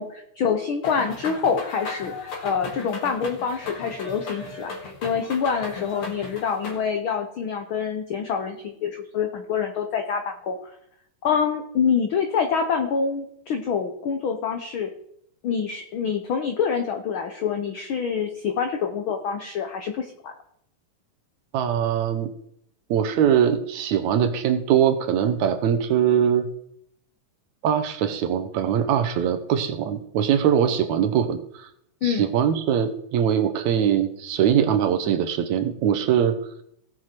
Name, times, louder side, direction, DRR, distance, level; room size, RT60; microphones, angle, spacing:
voice 1, 0.0-10.6 11.2-14.9 15.4-20.3 32.0-32.3, left 6 dB, 85° left, 5 dB, 1.1 m, -26 dB
sound 1, 0.8-6.8, left 3 dB, 50° left, 2.6 m, -36 dB
voice 2, 21.5-22.3 22.9-26.5 27.6-31.7 32.0-36.4, right 9 dB, 70° right, 9 dB, 2.1 m, -22 dB
17.5 x 6.3 x 4.4 m, 0.72 s
omnidirectional pair, 3.6 m